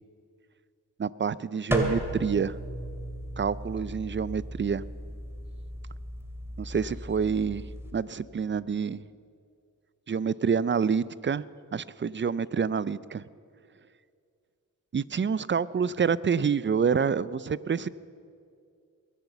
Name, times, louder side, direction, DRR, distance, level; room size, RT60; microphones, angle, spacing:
voice 1, 1.0-2.5 3.4-4.8 6.6-7.6 7.9-9.0 10.1-11.4 11.7-13.2 14.9-17.9, right 6 dB, 35° right, 19 dB, 0.4 m, -27 dB
sound 1, 1.7-7.9, right 1 dB, 5° right, 2.5 m, -35 dB
21.5 x 8.0 x 7.2 m, 2.4 s
cardioid pair, 40°, 35 cm